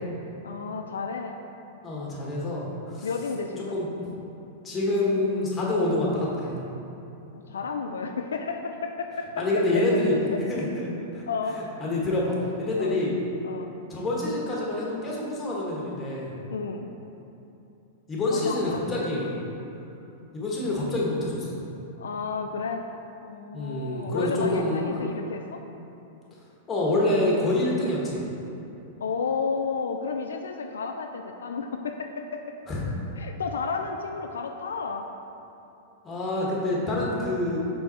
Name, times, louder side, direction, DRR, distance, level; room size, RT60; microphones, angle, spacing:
voice 1, 0.4-1.4 3.0-3.8 7.3-9.5 11.3-11.6 12.8-13.0 13.4-13.7 16.5-16.9 18.3-18.8 22.0-22.9 23.2-25.6 29.0-32.5 33.2-35.1, left 5 dB, 85° left, 4 dB, 0.3 m, -32 dB
voice 2, 1.8-2.7 2.9-3.1 3.7-3.9 4.6-6.5 9.4-10.1 10.5-10.7 11.1-11.2 11.8-13.2 13.9-16.3 18.1-19.4 20.3-21.6 23.5-25.0 26.7-28.2 32.7-32.8 36.0-37.6, left 2 dB, 20° left, -4 dB, 1.5 m, -26 dB
5.6 x 4.0 x 4.2 m, 2.8 s
hypercardioid pair, 110°, 0 cm